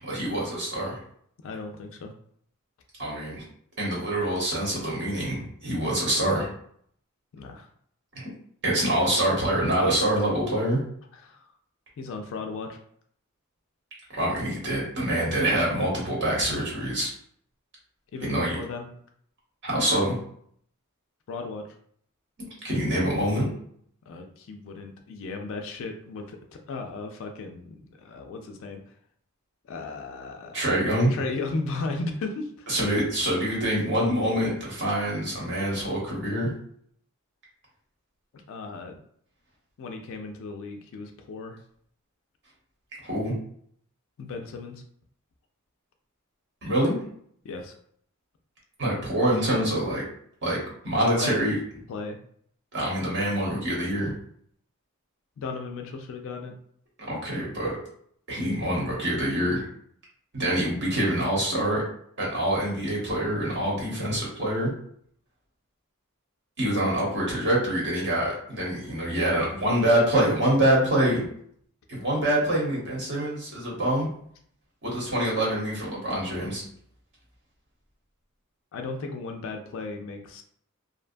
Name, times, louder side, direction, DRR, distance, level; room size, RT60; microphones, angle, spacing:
voice 1, 0.0-1.0 3.0-3.4 3.8-6.5 8.1-8.3 8.6-10.8 14.2-17.1 18.2-18.6 19.6-20.2 22.6-23.5 30.5-31.2 32.7-36.5 43.0-43.4 46.6-47.0 48.8-50.1 50.4-50.6 50.8-51.6 52.7-54.1 57.1-57.7 58.3-59.7 60.3-61.8 62.2-64.7 66.6-71.3 71.9-74.1 74.8-76.6, right 1 dB, 55° right, -4 dB, 1.0 m, -25 dB
voice 2, 1.4-2.1 7.3-7.7 11.1-11.5 12.0-12.8 18.1-18.9 21.3-21.8 24.1-28.8 29.6-32.7 38.5-39.0 39.8-41.6 44.2-44.8 47.4-47.7 51.1-51.4 51.9-52.2 55.4-56.5 78.7-80.4, left 3 dB, 65° left, 4 dB, 0.3 m, -36 dB
2.6 x 2.2 x 2.5 m, 0.64 s
head